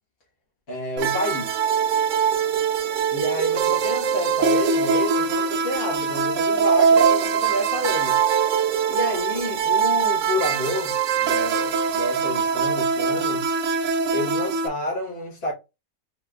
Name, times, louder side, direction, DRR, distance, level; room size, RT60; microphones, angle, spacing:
voice 1, 0.7-1.5 3.1-8.2 8.9-13.5 14.1-15.5, left 1 dB, 40° left, 1.6 m, -29 dB
sound 1, 1.0-14.7, right 6 dB, 65° right, 0.8 m, -22 dB
4.7 x 3.5 x 2.3 m
omnidirectional pair, 1.7 m